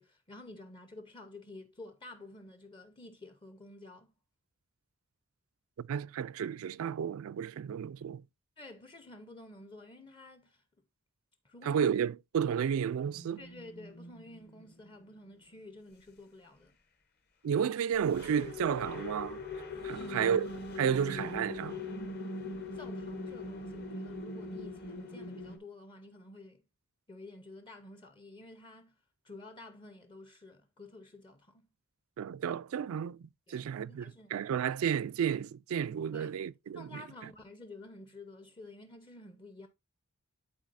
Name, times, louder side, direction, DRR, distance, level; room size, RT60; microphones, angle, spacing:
voice 1, 0.0-4.1 8.6-10.6 11.4-11.8 13.4-16.8 20.0-20.3 22.7-26.6 27.1-29.0 29.2-31.7 33.5-34.4 36.1-36.4 36.8-39.7, left 2 dB, 20° left, 0.6 m, -51 dB
voice 2, 5.8-8.2 11.6-13.4 17.4-19.4 19.8-20.5 20.8-21.8 32.2-37.0, right 8 dB, 70° right, 0.3 m, -32 dB
sound 1, 13.1-14.9 17.9-25.6, left 2 dB, 45° left, 1.0 m, -41 dB
11.5 x 4.0 x 2.5 m
head